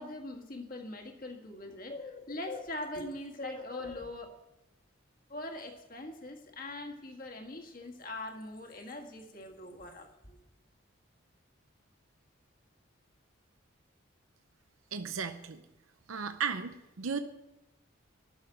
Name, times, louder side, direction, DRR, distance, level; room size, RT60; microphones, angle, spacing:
voice 1, 0.0-4.3 5.3-10.4, left 2 dB, 45° left, 3 dB, 1.7 m, -42 dB
voice 2, 14.9-15.6 16.1-17.2, right 6 dB, 85° right, 9 dB, 0.7 m, -35 dB
12.5 x 7.0 x 9.0 m, 0.96 s
head